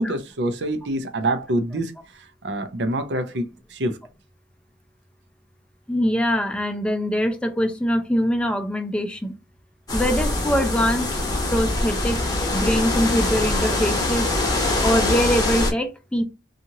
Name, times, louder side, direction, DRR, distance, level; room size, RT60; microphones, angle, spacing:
voice 1, 0.0-4.0, right 1 dB, 75° right, 0.6 m, -26 dB
voice 2, 5.9-9.3 9.9-11.1 11.5-12.2 12.5-14.3 14.8-16.2, equal, 5° left, 0.5 m, -23 dB
sound 1, 9.9-15.7, left 2 dB, 25° left, 1.0 m, -23 dB
2.8 x 2.4 x 2.7 m
head